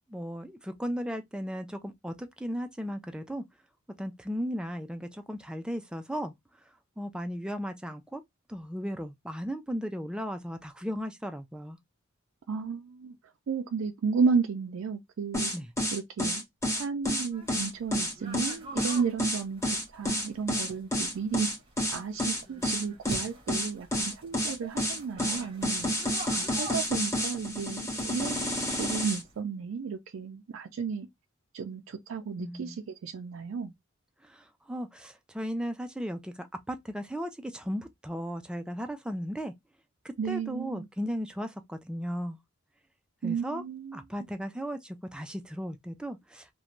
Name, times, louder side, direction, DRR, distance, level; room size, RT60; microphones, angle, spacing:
voice 1, 0.1-3.4 4.0-6.3 7.0-8.2 8.5-11.8 15.5-15.7 32.4-32.8 34.2-39.5 40.0-42.4 43.2-43.6 43.9-46.5, equal, 5° right, 0.3 m, -36 dB
voice 2, 12.5-13.2 13.5-15.5 15.9-16.4 16.7-21.5 21.9-26.0 26.4-31.1 31.5-33.7 40.2-40.9 43.2-44.0, right 5 dB, 80° right, 0.4 m, -33 dB
sound 1, 15.3-29.2, equal, 15° left, 0.9 m, -30 dB
sound 2, 17.3-29.4, right 2 dB, 25° right, 0.9 m, -48 dB
2.5 x 2.1 x 2.9 m
head